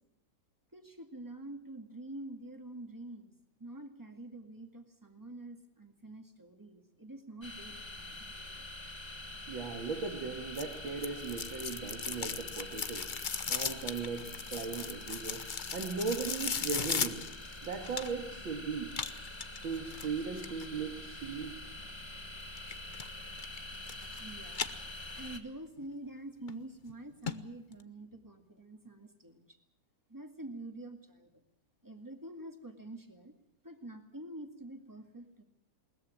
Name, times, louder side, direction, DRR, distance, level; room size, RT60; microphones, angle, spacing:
voice 1, 0.7-3.3 3.6-8.6 24.2-24.6 25.1-29.6 30.1-31.3 31.8-33.3 33.6-35.4, right 1 dB, 10° right, 5 dB, 1.9 m, -47 dB
sound 1, 7.4-25.4, left 2 dB, 15° left, 1.3 m, -46 dB
voice 2, 9.5-13.1 13.5-15.4 15.7-17.2 17.6-18.9 19.6-21.5, right 5 dB, 75° right, 3 dB, 2.7 m, -38 dB
sound 2, 10.5-18.3 18.9-20.6 22.6-23.1 23.4-24.2 24.5-25.4 25.8-25.9 26.5-26.6 26.9-27.0 27.3-27.4 27.7-27.8, left 6 dB, 75° left, 0.4 m, -37 dB
21.5 x 19.5 x 7.5 m, 0.81 s
omnidirectional pair, 2.2 m